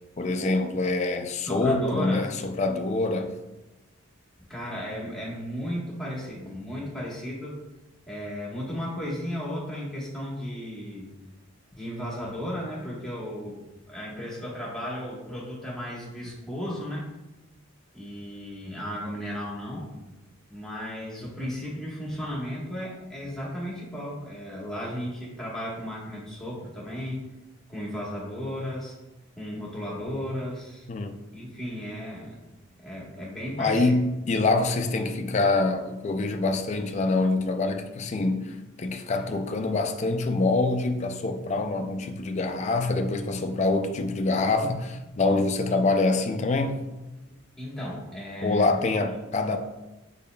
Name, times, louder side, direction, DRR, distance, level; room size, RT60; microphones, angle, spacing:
voice 1, 0.2-3.3 30.9-31.3 33.6-46.9 48.4-49.6, left 3 dB, 35° left, 6 dB, 0.3 m, -25 dB
voice 2, 1.4-2.3 4.5-7.6 8.1-11.1 11.7-17.1 17.9-20.0 20.5-27.2 27.7-28.9 29.4-30.9 31.3-32.4 32.8-34.0 47.6-48.7, equal, ahead, -7 dB, 1.2 m, -34 dB
5.4 x 4.1 x 2.2 m, 1.0 s
head